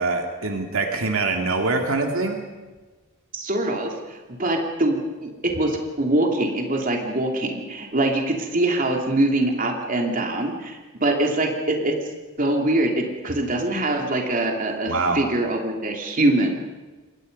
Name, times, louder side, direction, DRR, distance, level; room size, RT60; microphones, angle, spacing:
voice 1, 0.0-2.4 14.9-15.2, right 3 dB, 70° right, 3 dB, 2.3 m, -24 dB
voice 2, 3.3-11.9 12.4-16.5, right 1 dB, 40° right, 1 dB, 2.8 m, -23 dB
27.0 x 21.5 x 5.4 m, 1.3 s
head